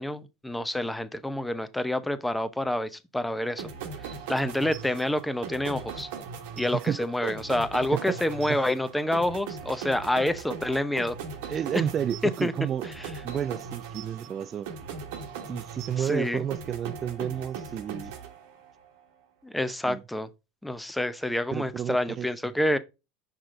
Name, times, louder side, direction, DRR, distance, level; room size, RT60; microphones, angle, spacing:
voice 1, 0.0-3.7 4.3-6.1 6.6-11.2 11.7-11.8 12.4-12.5 13.0-13.1 16.0-16.4 19.4-20.3 20.6-22.8, left 1 dB, 5° left, 0.8 m, -28 dB
sound 1, 3.6-18.9, right 6 dB, 70° right, 1.3 m, -40 dB
voice 2, 11.5-12.9 13.2-14.7 15.5-18.1 19.7-20.0 21.5-22.3, right 9 dB, 40° right, 0.3 m, -31 dB
5.9 x 5.1 x 3.7 m
hypercardioid pair, 80°, 0 cm